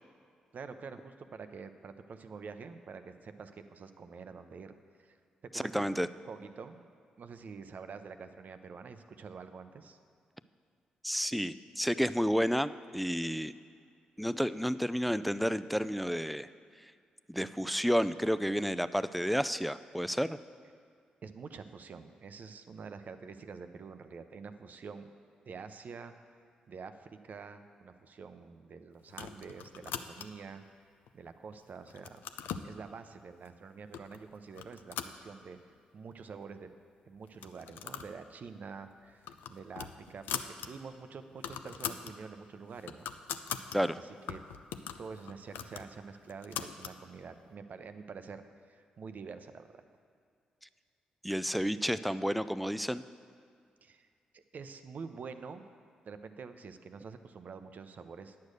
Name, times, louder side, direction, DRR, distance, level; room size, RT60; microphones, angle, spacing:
voice 1, 0.5-5.9 6.3-6.8 7.2-10.0 21.2-25.1 25.4-26.1 26.7-30.6 31.1-32.2 32.6-35.6 35.9-36.7 37.1-43.1 44.0-44.4 45.0-49.8 53.8-54.1 54.3-55.6 56.0-58.3, right 5 dB, 55° right, 9 dB, 0.6 m, -47 dB
voice 2, 5.5-6.1 11.0-13.5 14.2-16.5 17.3-20.4 43.7-44.0 51.2-53.0, equal, ahead, 14 dB, 0.4 m, -31 dB
sound 1, 29.1-30.5 31.1-31.6 31.9-32.7 33.5-33.6 33.9-34.2 34.5-35.8 36.1-36.2 36.4-36.5 37.3-38.2 38.5-38.7 39.0-40.7 41.0-41.1 41.3-42.1 42.6-43.8 44.3-47.0, left 9 dB, 80° left, 0.4 m, -41 dB
9.4 x 6.6 x 6.5 m, 2.2 s
hypercardioid pair, 45°, 3 cm